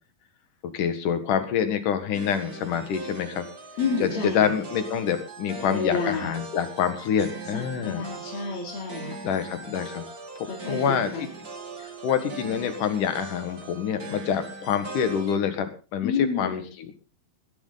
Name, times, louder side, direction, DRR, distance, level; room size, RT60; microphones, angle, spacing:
voice 1, 0.7-3.5 4.0-8.1 9.2-10.0 10.4-11.3 11.8-16.9, left 8 dB, 65° left, 9 dB, 3.1 m, -27 dB
sound 1, 2.1-15.4, right 3 dB, 30° right, 1.9 m, -40 dB
voice 2, 3.8-4.5 5.7-6.3 7.5-9.2 10.4-10.8 11.1-11.3 16.0-16.6, left 5 dB, 85° left, -2 dB, 5.0 m, -29 dB
20.5 x 11.0 x 3.9 m, 0.33 s
omnidirectional pair, 4.2 m